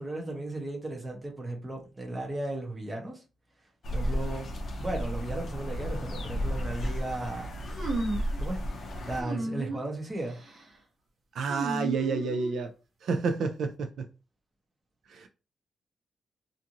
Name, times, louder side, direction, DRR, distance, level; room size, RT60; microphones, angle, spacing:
voice 1, 0.0-3.2 3.9-7.7 8.2-8.6 9.1-10.4, right 2 dB, 20° right, 0.7 m, -36 dB
sound 1, 3.8-9.2, equal, 50° left, 0.5 m, -33 dB
sound 2, 7.7-8.4 9.2-9.8 10.2-10.6 11.5-12.7, right 2 dB, 50° right, 1.0 m, -34 dB
voice 2, 11.3-12.7 13.0-14.1 15.1-15.3, right 4 dB, 70° right, 0.3 m, -29 dB
2.5 x 2.5 x 2.8 m
wide cardioid pair, 180°, 0 cm